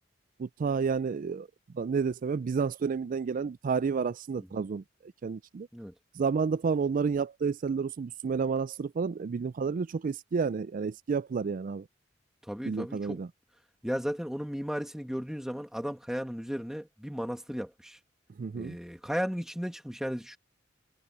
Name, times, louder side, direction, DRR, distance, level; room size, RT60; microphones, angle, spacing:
voice 1, 0.4-1.5 1.7-5.7 6.2-11.9 12.6-13.3 18.4-18.8, right 5 dB, 45° right, 0.4 m, -30 dB
voice 2, 12.5-13.2 13.8-18.0 18.5-20.4, equal, 5° right, 1.7 m, -35 dB
head